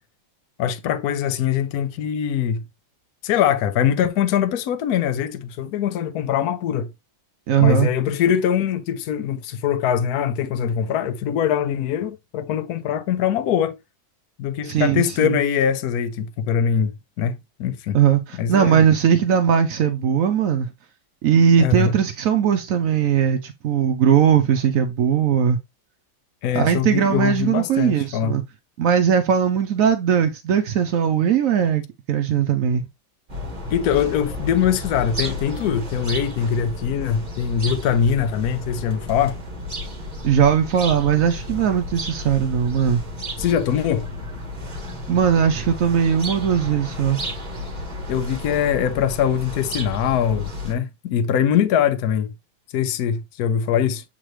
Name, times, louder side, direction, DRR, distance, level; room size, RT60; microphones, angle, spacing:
voice 1, 0.6-2.6 3.2-6.9 7.6-13.8 14.4-18.0 18.3-18.8 21.6-21.9 26.4-28.4 33.7-39.4 43.4-44.1 48.1-52.3 52.7-54.0, left 8 dB, 65° left, 1.0 m, -22 dB
voice 2, 7.5-7.9 14.6-15.4 17.9-20.7 21.2-25.6 26.5-28.4 28.8-31.8 32.1-32.8 40.2-43.0 45.1-47.2, right 8 dB, 75° right, 0.8 m, -19 dB
sound 1, 33.3-50.7, left 1 dB, 25° right, 1.6 m, -32 dB
7.6 x 4.0 x 3.1 m
omnidirectional pair, 2.1 m